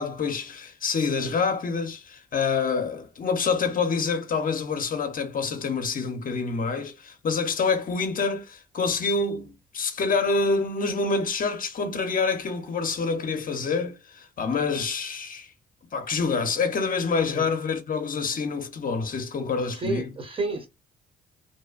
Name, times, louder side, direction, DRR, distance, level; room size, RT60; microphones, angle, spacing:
voice 1, 0.0-15.5 15.9-20.1, left 4 dB, 45° left, 0.6 m, -27 dB
voice 2, 19.7-20.7, right 3 dB, 25° right, 0.8 m, -30 dB
2.6 x 2.1 x 2.3 m
cardioid pair, 90°, 20 cm